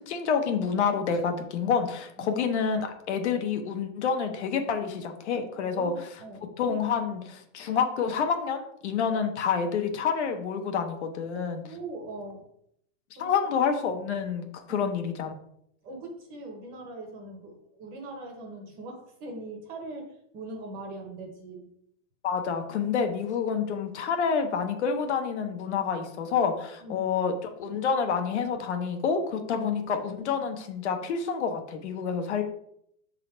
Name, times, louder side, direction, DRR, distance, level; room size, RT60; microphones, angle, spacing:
voice 1, 0.1-5.9 6.6-11.6 13.2-15.3 22.2-32.4, left 6 dB, 60° left, 5 dB, 1.0 m, -28 dB
voice 2, 5.7-6.5 11.6-12.5 13.1-13.3 14.7-14.9 15.8-21.7 26.8-27.1 29.6-29.7, right 2 dB, 20° right, 2 dB, 1.0 m, -41 dB
6.2 x 3.8 x 4.4 m, 0.73 s
supercardioid pair, 165°, 39 cm